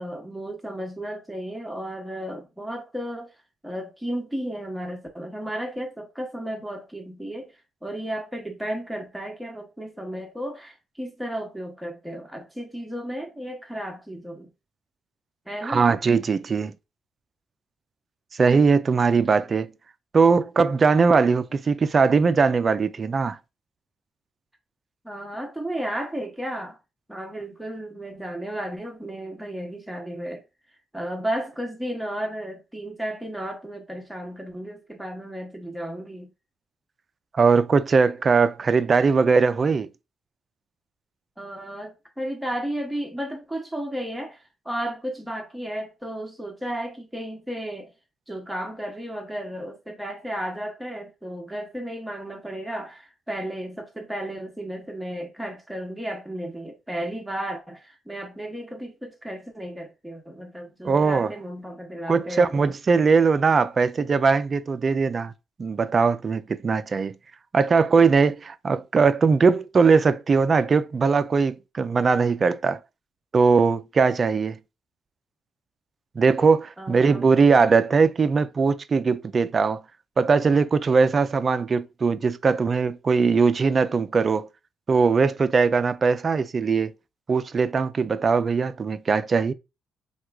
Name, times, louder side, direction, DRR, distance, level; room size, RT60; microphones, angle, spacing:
voice 1, 0.0-3.3 3.6-7.5 7.8-14.5 15.5-15.9 25.0-26.8 27.1-30.4 30.9-36.3 41.4-47.9 48.3-62.5 76.8-77.3, right 1 dB, 5° right, 1.0 m, -33 dB
voice 2, 15.6-16.7 18.3-19.7 20.1-23.4 37.3-39.9 60.8-61.3 62.1-65.3 65.6-67.1 67.5-72.8 73.3-74.6 76.2-79.8 80.2-84.5 84.9-86.9 87.3-89.5, right 5 dB, 40° right, 0.3 m, -20 dB
2.9 x 2.3 x 3.4 m
cardioid pair, 90°, 0 cm